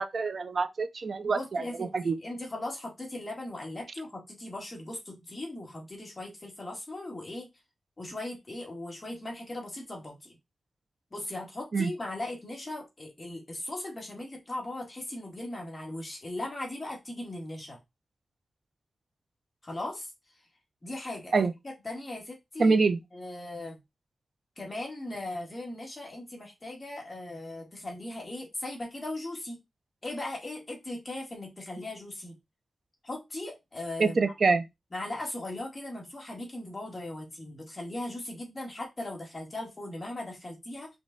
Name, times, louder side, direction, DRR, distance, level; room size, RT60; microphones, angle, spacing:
voice 1, 0.0-2.1 11.7-11.9 21.3-21.5 22.6-23.0 34.0-34.6, right 4 dB, 55° right, 0.6 m, -26 dB
voice 2, 1.2-7.5 8.0-10.4 11.1-17.8 19.6-20.1 20.8-22.8 23.1-23.8 24.6-29.6 30.0-32.4 33.0-34.2 34.9-40.9, left 1 dB, 30° left, 1.8 m, -38 dB
5.2 x 2.3 x 3.9 m
wide cardioid pair, 130°, 0 cm